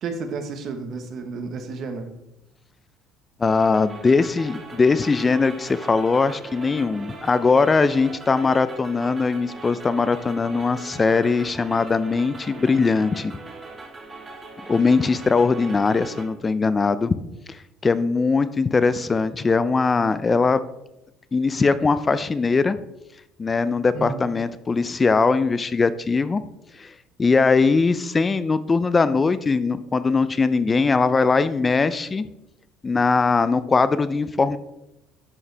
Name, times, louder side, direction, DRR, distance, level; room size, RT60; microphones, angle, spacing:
voice 1, 0.0-2.1 23.9-24.3, right 4 dB, 55° right, 7 dB, 1.2 m, -31 dB
voice 2, 3.4-13.3 14.7-17.2 17.5-20.6 21.3-22.8 23.4-26.4 26.8-26.9 27.2-32.3 32.8-34.6, left 4 dB, 25° left, 14 dB, 0.4 m, -20 dB
sound 1, 3.4-16.3, right 3 dB, 25° right, 1.4 m, -40 dB
11.0 x 4.7 x 3.3 m, 0.88 s
supercardioid pair, 95°, 0 cm